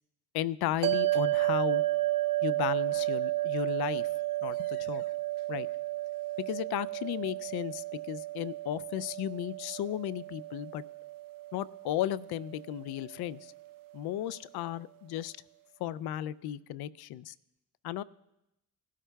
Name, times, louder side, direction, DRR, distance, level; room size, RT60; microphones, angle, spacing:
voice 1, 0.3-1.8 2.4-4.1 4.4-5.1 5.5-5.7 6.5-10.8 11.5-13.5 13.9-15.3 15.8-17.3 17.8-18.0, left 12 dB, 80° left, 19 dB, 0.5 m, -35 dB
sound 1, 0.8-13.3, right 16 dB, 60° right, 0.6 m, -32 dB
19.5 x 12.0 x 2.3 m, 0.88 s
cardioid pair, 80°, 38 cm